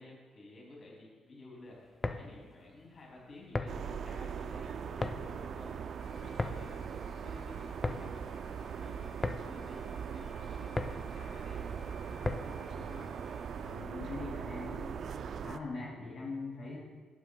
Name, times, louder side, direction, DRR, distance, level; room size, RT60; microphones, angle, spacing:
voice 1, 0.0-5.7 6.0-6.8 7.2-12.8 13.6-13.9, left 2 dB, 45° left, -3 dB, 2.6 m, -53 dB
sound 1, 1.8-12.7, left 2 dB, 20° left, 0.4 m, -40 dB
sound 2, 3.7-15.6, right 7 dB, 60° right, 0.3 m, -40 dB
sound 3, 6.0-13.7, left 3 dB, 85° left, 2.7 m, -62 dB
voice 2, 12.8-13.1 13.6-15.0 15.3-16.8, left 3 dB, 60° left, -6 dB, 2.3 m, -42 dB
12.0 x 8.5 x 2.2 m, 1.5 s
cardioid pair, 90°, 0 cm